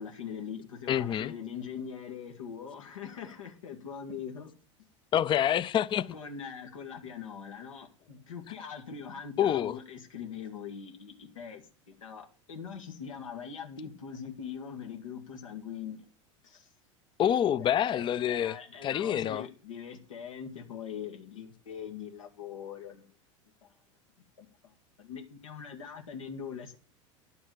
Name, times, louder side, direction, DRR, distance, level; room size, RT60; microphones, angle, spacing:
voice 1, 0.0-4.5 6.1-16.0 16.4-16.7 17.6-23.1 23.6-23.7 24.4-26.7, left 7 dB, 90° left, 2.1 m, -42 dB
voice 2, 0.9-1.3 5.1-6.2 9.4-9.8 17.2-18.6 18.8-19.5, left 10 dB, 30° left, 0.5 m, -27 dB
11.0 x 6.9 x 7.3 m
hypercardioid pair, 90°, 16 cm